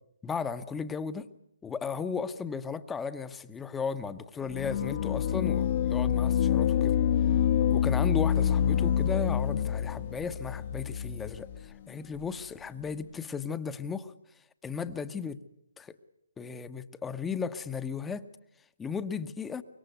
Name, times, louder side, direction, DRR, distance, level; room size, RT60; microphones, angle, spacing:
voice 1, 0.2-1.3 1.6-7.0 7.7-14.1 14.6-15.4 15.8-15.9 16.4-18.3 18.8-19.6, left 5 dB, 10° left, 1.0 m, -35 dB
sound 1, 4.5-11.7, left 9 dB, 45° left, 1.2 m, -27 dB
25.0 x 23.0 x 8.1 m
figure-of-eight pair, 140°, 0 cm